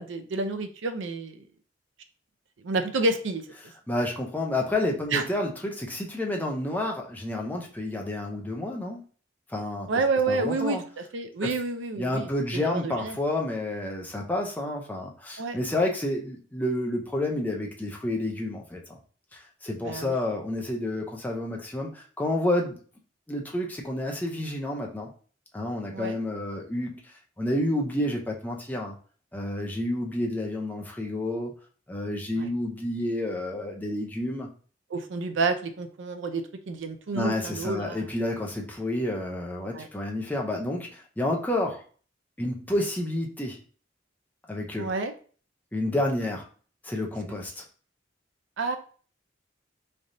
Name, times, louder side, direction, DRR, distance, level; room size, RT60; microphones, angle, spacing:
voice 1, 0.0-1.4 2.6-3.4 5.1-5.2 9.9-13.2 15.4-15.6 19.8-20.1 25.9-26.2 32.4-32.5 34.9-38.0 39.7-39.9 44.8-45.1 48.6-48.8, right 3 dB, 85° right, 8 dB, 0.5 m, -29 dB
voice 2, 3.9-9.0 9.5-9.9 10.3-10.8 11.4-11.5 12.0-19.0 19.3-22.8 23.3-25.1 25.5-27.1 27.4-28.9 29.3-31.5 31.9-34.5 37.1-41.8 42.4-43.6 44.5-44.9 45.7-46.5 46.8-47.6, left 1 dB, 10° left, 0 dB, 0.6 m, -30 dB
3.8 x 3.3 x 2.7 m, 0.41 s
head